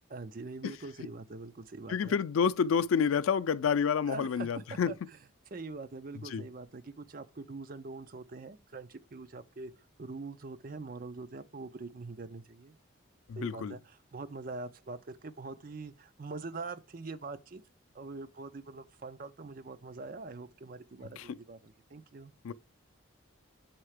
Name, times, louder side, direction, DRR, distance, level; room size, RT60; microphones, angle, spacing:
voice 1, 0.1-2.2 4.1-5.0 5.5-9.7 10.0-12.8 13.4-17.6 17.9-22.3, right 3 dB, 45° right, 0.5 m, -43 dB
voice 2, 1.9-4.9 6.3-6.4 13.3-13.7 21.2-21.4 22.4-22.5, left 6 dB, 85° left, 0.4 m, -29 dB
6.5 x 4.4 x 4.8 m
head